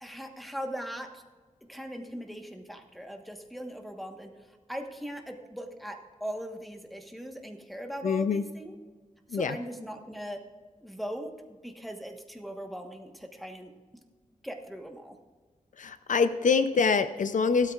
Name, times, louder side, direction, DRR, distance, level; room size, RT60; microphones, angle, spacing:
voice 1, 0.0-1.2 1.7-4.3 4.7-8.8 9.3-10.4 10.8-11.3 11.6-13.7 14.4-15.1, equal, ahead, 3 dB, 1.2 m, -39 dB
voice 2, 8.0-8.4 9.3-9.6 15.8-17.7, left 5 dB, 70° left, 12 dB, 0.5 m, -25 dB
16.0 x 12.5 x 2.4 m, 1.4 s
wide cardioid pair, 130°, 14 cm